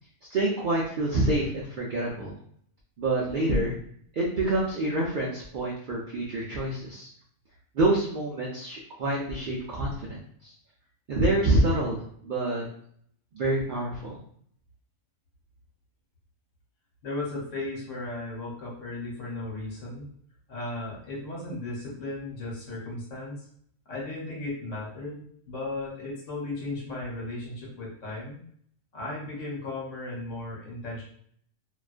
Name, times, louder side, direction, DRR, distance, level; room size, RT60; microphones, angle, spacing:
voice 1, 0.3-2.3 3.0-3.8 4.1-7.1 7.7-10.5 11.1-12.6 13.3-14.2, right 1 dB, 70° right, -4 dB, 0.4 m, -27 dB
voice 2, 17.0-20.1 20.5-23.5 23.9-28.4 28.9-31.0, left 2 dB, 70° left, -4 dB, 1.2 m, -36 dB
2.4 x 2.2 x 2.4 m, 0.62 s
omnidirectional pair, 1.4 m